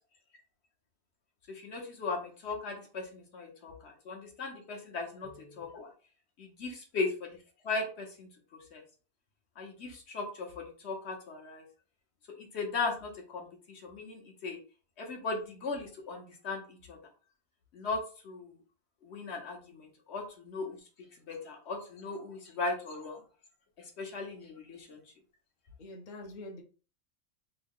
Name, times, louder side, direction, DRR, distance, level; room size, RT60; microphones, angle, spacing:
voice 1, 1.5-5.9 6.4-7.4 7.6-8.8 9.6-11.6 12.3-14.6 15.0-17.0 17.7-18.5 19.0-20.8 21.3-23.2 23.8-25.0, left 3 dB, 60° left, 2 dB, 1.2 m, -38 dB
voice 2, 25.8-26.6, left 1 dB, 45° left, 1 dB, 0.7 m, -45 dB
3.6 x 2.3 x 3.6 m, 0.37 s
omnidirectional pair, 1.3 m